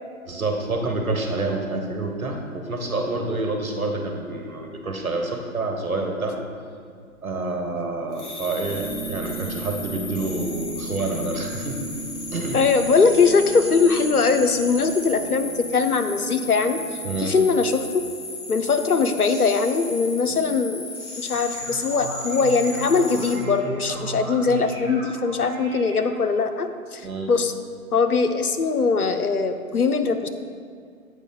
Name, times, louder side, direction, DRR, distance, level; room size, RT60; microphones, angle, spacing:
voice 1, 0.3-6.4 7.2-11.9 12.3-12.6 17.0-17.3 20.3-20.4 27.0-27.3, right 2 dB, 75° right, 3 dB, 1.3 m, -28 dB
sound 1, 8.1-23.4, left 2 dB, 55° left, 1.8 m, -35 dB
sound 2, 8.6-17.2, right 3 dB, 40° left, 1.8 m, -37 dB
voice 2, 12.5-16.8 17.2-18.0 18.5-20.9 21.2-27.5 27.9-30.3, left 4 dB, 90° left, 8 dB, 0.7 m, -21 dB
sound 3, 21.3-26.5, right 4 dB, 20° right, 0.7 m, -36 dB
8.2 x 5.2 x 3.9 m, 2.2 s
figure-of-eight pair, 135°, 43 cm